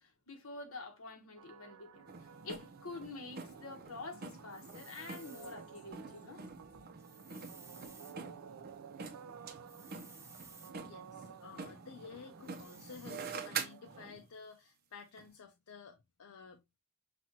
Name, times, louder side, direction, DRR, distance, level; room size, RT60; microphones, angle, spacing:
voice 1, 0.0-2.1 2.4-6.7, left 3 dB, 65° left, 1.3 m, -47 dB
sound 1, 1.4-14.1, right 7 dB, 75° right, 0.3 m, -55 dB
sound 2, 2.1-14.3 15.2-15.3, right 5 dB, 45° right, 0.7 m, -47 dB
sound 3, 4.5-5.6 7.0-8.2 9.7-10.7 12.4-13.4, right 4 dB, 15° right, 0.7 m, -57 dB
voice 2, 10.9-16.8, left 5 dB, 85° left, 0.6 m, -52 dB
6.0 x 2.5 x 2.7 m
head